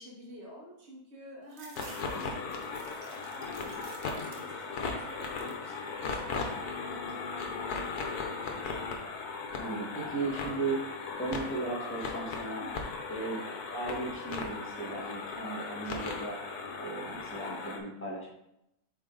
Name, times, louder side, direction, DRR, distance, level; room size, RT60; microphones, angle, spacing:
voice 1, 0.0-3.9 4.3-8.2 12.6-13.1, equal, 40° right, -5 dB, 2.1 m, -50 dB
sound 1, 1.5-4.8 5.1-5.7 6.2-6.9, right 4 dB, 65° right, 1.2 m, -53 dB
sound 2, 1.8-17.8, left 4 dB, 80° left, 1.4 m, -37 dB
voice 2, 2.0-2.3 9.6-10.8 11.2-12.6 13.1-13.4 13.7-16.4 16.8-18.3, right 3 dB, 10° left, -5 dB, 1.7 m, -36 dB
7.7 x 4.1 x 4.0 m, 0.82 s
omnidirectional pair, 1.7 m